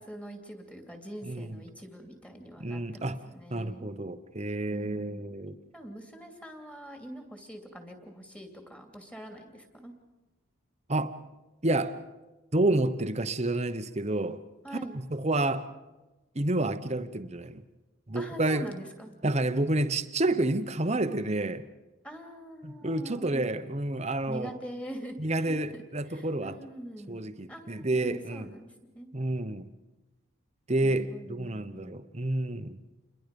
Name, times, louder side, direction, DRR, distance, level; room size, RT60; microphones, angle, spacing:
voice 1, 0.0-3.9 4.7-5.3 5.7-9.9 14.6-15.0 18.1-19.1 22.0-23.5 24.3-27.2 27.5-29.1 30.8-32.0, equal, 5° left, 4 dB, 2.7 m, -44 dB
voice 2, 1.2-1.6 2.6-3.2 3.5-5.5 10.9-11.2 11.6-12.0 12.5-14.4 14.9-15.7 16.3-17.6 18.1-18.6 19.2-21.6 22.6-24.5 25.2-26.6 27.1-28.5 29.1-29.7 30.7-32.8, right 2 dB, 30° right, 10 dB, 1.0 m, -29 dB
28.5 x 22.0 x 5.3 m, 1.1 s
head